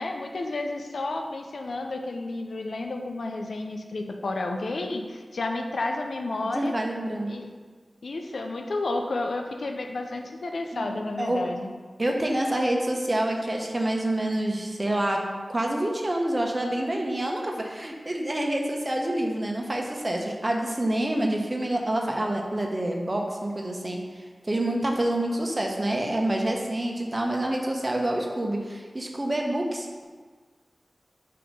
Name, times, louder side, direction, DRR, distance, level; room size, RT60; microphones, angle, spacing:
voice 1, 0.0-6.7 7.3-7.5 8.0-11.7, left 2 dB, 85° left, 3 dB, 0.5 m, -31 dB
voice 2, 6.4-7.4 10.7-10.9 11.2-11.4 12.0-15.2 15.5-30.0, right 1 dB, 35° right, 1 dB, 0.9 m, -27 dB
6.1 x 2.9 x 5.2 m, 1.5 s
cardioid pair, 40°, 0 cm